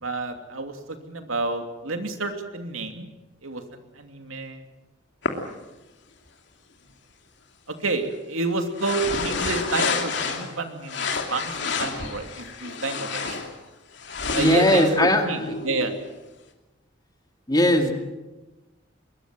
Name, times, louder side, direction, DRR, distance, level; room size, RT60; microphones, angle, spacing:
voice 1, 0.0-3.1 3.4-3.6 4.0-4.6 7.7-13.4 14.3-15.9, right 3 dB, 90° right, 6 dB, 2.8 m, -29 dB
sound 1, 5.2-5.3 8.8-10.6 10.9-13.5 13.9-16.1, left 4 dB, 60° left, 2.9 m, -29 dB
voice 2, 14.3-15.6 17.5-17.9, left 1 dB, 20° left, 5 dB, 2.3 m, -19 dB
23.5 x 21.5 x 7.7 m, 1.1 s
head